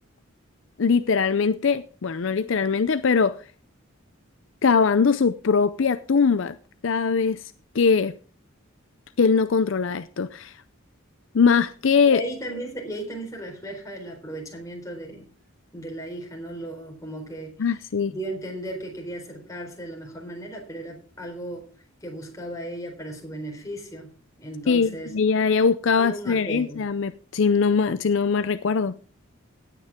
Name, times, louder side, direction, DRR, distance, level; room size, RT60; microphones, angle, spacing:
voice 1, 0.8-3.4 4.6-6.5 6.8-7.4 7.7-8.1 9.2-10.5 11.3-12.2 17.6-18.1 24.7-28.9, left 5 dB, 60° left, 12 dB, 0.5 m, -21 dB
voice 2, 12.1-15.3 15.7-17.5 18.1-21.7 22.0-24.1 24.4-25.1 25.9-26.9, right 1 dB, 15° left, 1 dB, 4.2 m, -35 dB
17.5 x 9.1 x 3.6 m, 0.40 s
head